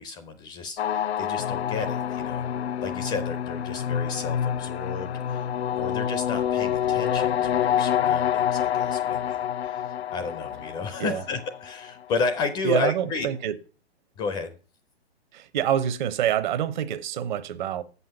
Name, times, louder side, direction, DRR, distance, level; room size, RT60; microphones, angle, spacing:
voice 1, 0.0-2.5 2.8-5.5 5.7-13.3 14.2-14.5, left 4 dB, 15° left, 0.4 m, -32 dB
sound 1, 0.8-11.9, left 9 dB, 80° left, 0.5 m, -27 dB
voice 2, 12.6-13.6 15.3-17.8, right 10 dB, 45° right, 0.8 m, -26 dB
7.4 x 5.7 x 5.8 m
hypercardioid pair, 125°, 32 cm